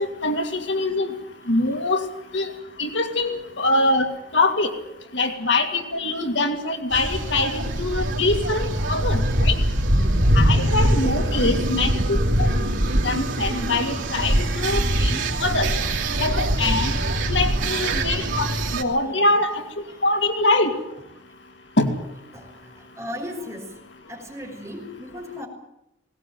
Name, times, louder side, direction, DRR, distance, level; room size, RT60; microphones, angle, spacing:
voice 1, 0.2-1.1 1.5-2.0 2.3-2.5 2.8-4.1 4.3-4.7 5.1-9.6 10.3-12.5 13.0-15.7 16.2-16.9 17.3-18.4 18.7-19.5 20.0-20.7 21.8-21.9, left 2 dB, 70° left, 4 dB, 2.6 m, -23 dB
sound 1, 6.9-18.8, right 1 dB, 85° right, 3.0 m, -22 dB
voice 2, 10.7-11.9 15.4-15.6 16.0-16.3 17.3-18.4 19.0-19.4 19.9-20.0 22.3-25.5, left 1 dB, 15° right, 0 dB, 6.2 m, -39 dB
20.5 x 19.0 x 9.4 m, 0.85 s
head